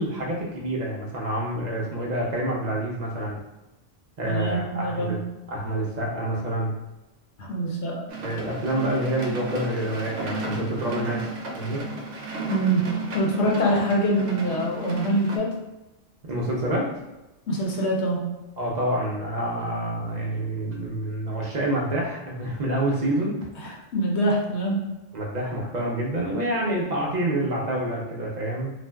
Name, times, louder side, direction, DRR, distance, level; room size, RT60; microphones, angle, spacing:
voice 1, 0.0-3.4 4.2-5.2 5.5-6.7 8.2-11.3 11.5-11.8 16.3-16.9 18.6-23.4 25.1-28.7, right 1 dB, 50° right, -3 dB, 0.5 m, -27 dB
voice 2, 4.3-5.2 7.4-8.0 12.5-12.9 13.1-15.6 17.5-18.2 23.6-24.8, right 1 dB, 65° left, -2 dB, 0.9 m, -24 dB
sound 1, 8.1-15.4, right 2 dB, 75° right, 0.9 m, -33 dB
2.5 x 2.1 x 3.3 m, 1.0 s
omnidirectional pair, 1.3 m